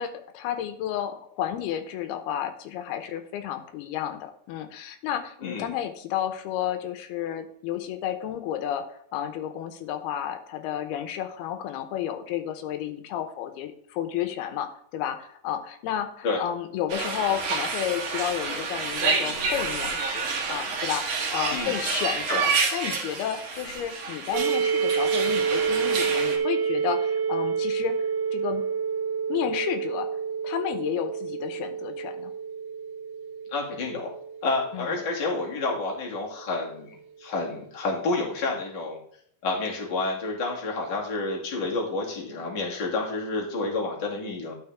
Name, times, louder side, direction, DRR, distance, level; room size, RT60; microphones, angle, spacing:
voice 1, 0.0-28.6 29.3-30.2 30.4-32.3 34.7-34.9, left 10 dB, 85° left, 8 dB, 2.9 m, -32 dB
sound 1, 16.9-26.4, right 4 dB, 55° right, 2.1 m, -29 dB
sound 2, 24.3-36.0, right 6 dB, 90° right, 2.7 m, -29 dB
voice 2, 33.5-34.1 34.4-39.0 39.4-44.5, left 3 dB, 35° left, -2 dB, 2.5 m, -29 dB
12.0 x 6.3 x 3.5 m, 0.65 s
omnidirectional pair, 4.4 m